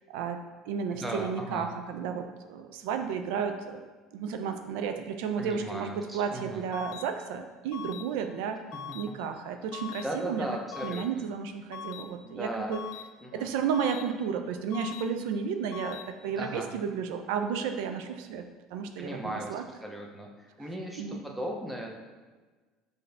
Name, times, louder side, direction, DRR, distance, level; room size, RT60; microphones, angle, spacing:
voice 1, 0.1-8.6 8.9-10.5 10.8-12.8 13.3-19.6 21.0-21.2, right 6 dB, 85° right, 7 dB, 0.4 m, -33 dB
voice 2, 0.9-1.7 5.4-6.6 10.0-11.1 12.2-12.7 13.2-13.5 16.3-16.7 19.0-20.3 20.6-22.0, right 1 dB, 5° right, 0 dB, 0.6 m, -37 dB
sound 1, 6.7-7.0 7.7-8.0 8.7-9.0 9.7-10.0 10.7-11.0 11.7-12.0 12.7-13.0 13.7-14.0 14.7-15.0 15.7-16.0, left 9 dB, 75° left, 0.3 m, -40 dB
5.8 x 2.6 x 3.3 m, 1.3 s
cardioid pair, 140°, 0 cm